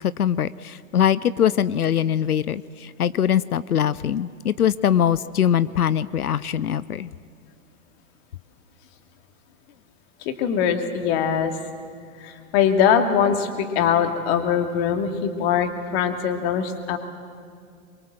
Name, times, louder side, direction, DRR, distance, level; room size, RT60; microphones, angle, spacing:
voice 1, 0.0-7.1, left 9 dB, 80° left, 17 dB, 0.7 m, -22 dB
voice 2, 10.2-11.5 12.2-17.0, left 8 dB, 45° left, 6 dB, 2.5 m, -22 dB
24.0 x 22.5 x 7.7 m, 2.2 s
figure-of-eight pair, 105°, 44 cm